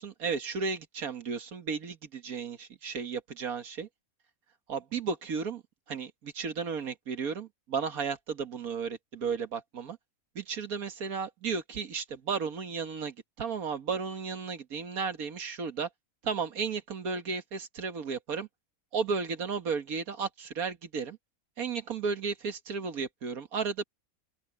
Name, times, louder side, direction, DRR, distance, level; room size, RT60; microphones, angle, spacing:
voice 1, 0.0-3.9 4.7-5.6 5.9-10.0 10.4-15.9 16.2-18.5 18.9-21.2 21.6-23.8, right 5 dB, 85° right, 2.0 m, -34 dB
open air
omnidirectional pair, 1.5 m